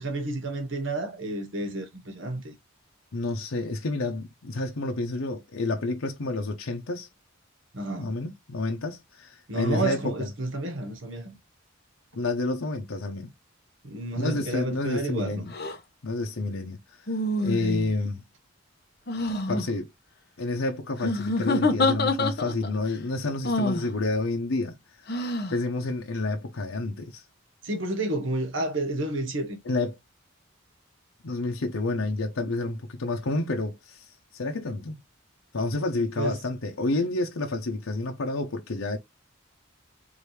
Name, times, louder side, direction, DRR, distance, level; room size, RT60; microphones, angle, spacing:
voice 1, 0.0-2.5 7.7-8.2 9.5-11.3 13.8-15.5 17.4-17.8 27.6-29.6 36.2-36.4, right 2 dB, 70° right, 1.3 m, -30 dB
voice 2, 3.1-7.1 8.0-10.3 12.1-13.3 14.2-15.5 16.0-16.8 17.4-18.2 19.5-19.9 20.4-25.1 25.5-27.2 29.7-30.0 31.2-34.0 34.3-35.0 35.5-39.0, left 2 dB, 90° left, 0.8 m, -29 dB
sound 1, 15.5-15.8 17.1-17.9 19.1-19.6 21.0-22.7 23.4-23.9 25.1-25.6, left 2 dB, 50° left, 1.0 m, -26 dB
5.0 x 2.6 x 3.2 m
head